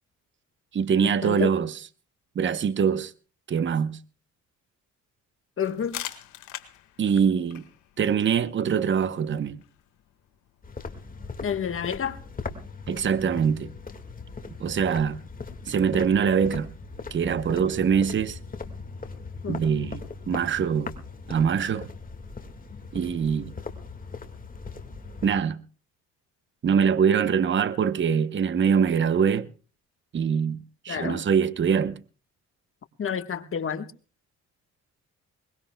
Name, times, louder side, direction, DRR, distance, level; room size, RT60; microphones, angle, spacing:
voice 1, 0.7-1.9 2.3-3.1 3.5-4.0 7.0-7.6 8.0-9.6 12.9-13.7 14.6-15.2 15.7-16.7 17.1-18.4 19.5-20.9 21.3-21.9 22.9-23.5 25.2-25.6 26.6-29.5 30.1-32.0, right 7 dB, 40° right, 0.8 m, -23 dB
sound 1, 5.6-11.1, left 12 dB, 85° left, 1.6 m, -44 dB
voice 2, 5.6-6.0 11.4-12.2 19.4-19.6 30.9-31.2 33.0-33.9, left 7 dB, 45° left, 1.3 m, -29 dB
sound 2, 10.6-25.4, left 4 dB, 30° left, 1.8 m, -39 dB
22.0 x 20.5 x 2.2 m
cardioid pair, 90°, 30 cm